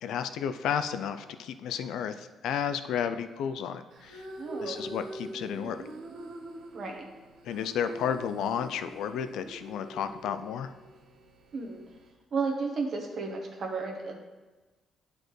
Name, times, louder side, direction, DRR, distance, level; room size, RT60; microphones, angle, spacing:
voice 1, 0.0-4.3 4.6-5.8 7.4-10.7, left 8 dB, 85° left, 10 dB, 0.3 m, -32 dB
sound 1, 3.9-12.1, right 1 dB, 75° right, 1.0 m, -44 dB
voice 2, 4.4-4.8 6.7-7.0 11.5-11.8 12.3-14.2, right 4 dB, 45° right, 2 dB, 1.1 m, -33 dB
10.5 x 4.2 x 3.2 m, 1.2 s
cardioid pair, 155°, 0 cm